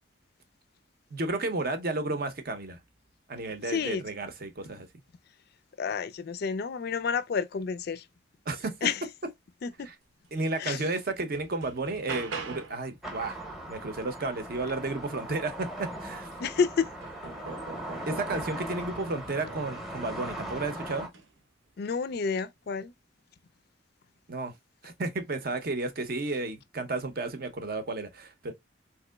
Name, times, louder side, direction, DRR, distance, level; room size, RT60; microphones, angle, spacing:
voice 1, 1.1-2.8 3.3-4.9 8.5-8.8 9.8-9.9 10.3-13.4 13.7-16.3 18.1-21.1 24.3-24.5 24.8-28.5, right 2 dB, 50° right, 0.6 m, -32 dB
voice 2, 3.7-4.0 5.8-8.0 8.8-9.0 9.6-9.9 10.6-10.8 16.4-16.9 21.8-22.9, left 6 dB, 55° left, 0.3 m, -29 dB
sound 1, 10.5-10.6 11.1-12.9 15.3-15.4 15.8-18.8 19.5-20.0 21.0-21.3, right 4 dB, 85° right, 0.9 m, -42 dB
sound 2, 13.0-21.1, right 1 dB, ahead, 0.7 m, -39 dB
3.6 x 2.9 x 2.2 m
head